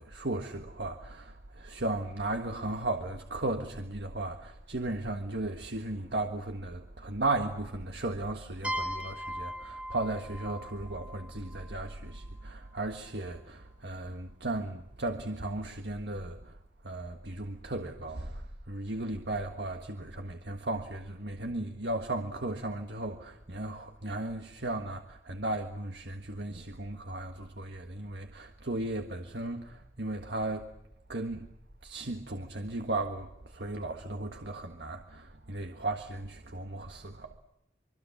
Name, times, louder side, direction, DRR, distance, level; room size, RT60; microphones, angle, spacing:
voice 1, 0.0-16.5 16.8-18.4 18.7-30.7 31.1-31.5 31.8-37.4, right 2 dB, 70° right, 1.6 m, -36 dB
sound 1, 8.6-12.3, equal, 5° right, 1.1 m, -39 dB
25.5 x 24.5 x 7.3 m
head